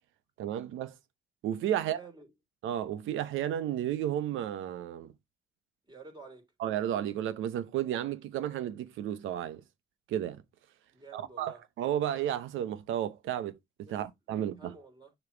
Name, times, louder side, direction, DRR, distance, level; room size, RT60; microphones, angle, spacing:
voice 1, 0.4-1.0 1.4-2.0 2.6-5.1 6.6-9.6 10.1-10.4 11.1-13.6 13.9-14.8, right 11 dB, 85° right, 0.8 m, -32 dB
voice 2, 1.8-2.3 5.8-6.5 10.9-11.6 13.9-14.0 14.3-15.1, right 4 dB, 20° right, 3.2 m, -51 dB
6.5 x 3.1 x 5.0 m
cardioid pair, 90°, 20 cm